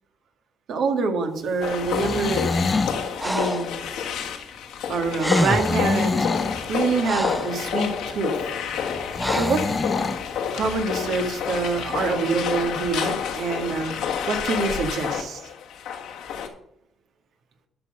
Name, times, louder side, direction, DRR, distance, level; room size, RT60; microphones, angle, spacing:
voice 1, 0.7-2.5 3.2-3.7 4.9-6.2 6.7-7.9 8.2-8.3 9.3-9.6 10.5-13.9 14.3-15.4, right 4 dB, 70° right, 5 dB, 1.9 m, -25 dB
sound 1, 1.6-16.5, left 7 dB, 85° left, 1.5 m, -29 dB
sound 2, 1.8-3.0 5.4-6.6 9.1-10.2, left 3 dB, 30° left, 0.8 m, -26 dB
Breathing, 3.2-3.7 4.9-5.0 5.2-5.9 6.6-7.6 9.2-9.7, equal, ahead, 0.3 m, -26 dB
12.0 x 6.2 x 5.5 m, 0.75 s
cardioid pair, 90°, 0 cm